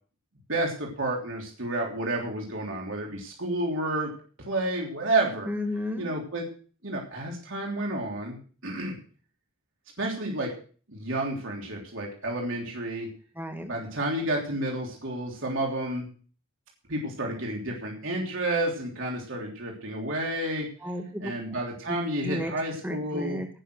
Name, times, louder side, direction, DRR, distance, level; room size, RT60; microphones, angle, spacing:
voice 1, 0.5-4.1 4.5-5.5 6.0-6.4 6.8-8.4 8.6-9.0 10.0-10.5 10.9-13.1 13.7-16.1 16.9-20.7 21.2-23.4, right 1 dB, 70° right, -1 dB, 3.3 m, -30 dB
voice 2, 5.5-6.1 13.4-13.7 20.8-21.3 22.2-22.5 22.8-23.5, left 1 dB, 10° right, 4 dB, 1.8 m, -32 dB
18.0 x 6.5 x 6.4 m, 0.41 s
head